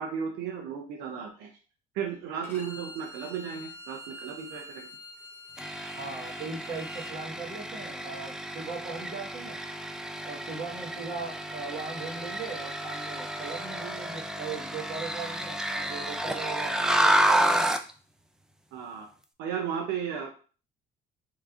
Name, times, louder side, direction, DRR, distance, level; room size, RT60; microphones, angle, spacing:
voice 1, 0.0-1.5 1.9-4.9 17.1-17.2 18.7-19.1 19.4-20.3, right 7 dB, 90° right, 2 dB, 0.6 m, -34 dB
Bowed string instrument, 2.4-7.1, left 1 dB, 10° left, 1.3 m, -46 dB
sound 1, 5.6-17.9, right 1 dB, 5° right, 0.3 m, -30 dB
voice 2, 5.9-9.6 10.2-17.7, right 4 dB, 45° right, -1 dB, 1.1 m, -39 dB
3.1 x 2.5 x 3.5 m, 0.37 s
cardioid pair, 110°, 17 cm